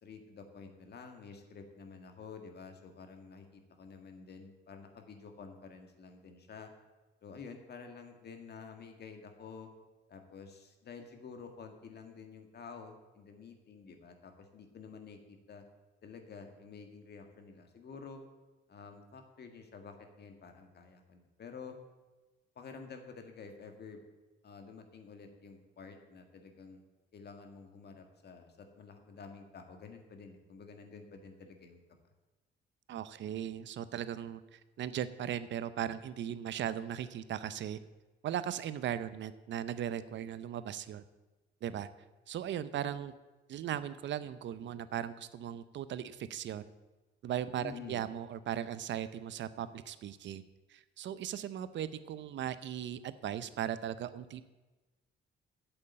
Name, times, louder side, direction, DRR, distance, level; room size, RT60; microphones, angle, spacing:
voice 1, 0.0-6.7 7.2-9.7 10.1-15.6 16.0-18.2 18.7-21.8 22.6-24.0 24.4-26.8 27.1-31.8 47.6-48.1, left 5 dB, 55° left, 5 dB, 1.8 m, -50 dB
voice 2, 32.9-37.8 38.2-41.0 41.6-41.9 42.3-43.1 43.5-46.6 47.2-50.4 50.7-54.4, right 10 dB, 65° right, 14 dB, 0.7 m, -38 dB
8.1 x 7.9 x 8.6 m, 1.2 s
cardioid pair, 90°, 20 cm